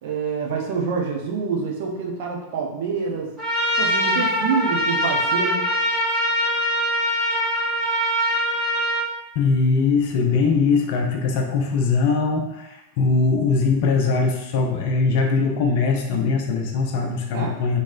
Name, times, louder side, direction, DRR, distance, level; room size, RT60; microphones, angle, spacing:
voice 1, 0.0-3.3 3.8-5.7 17.3-17.6, right 5 dB, 50° right, 0 dB, 0.6 m, -26 dB
Trumpet, 3.4-9.1, equal, 10° right, 1.5 m, -22 dB
voice 2, 9.3-17.8, left 4 dB, 50° left, 2 dB, 0.5 m, -21 dB
3.0 x 2.9 x 2.4 m, 0.88 s
figure-of-eight pair, 90°, 0 cm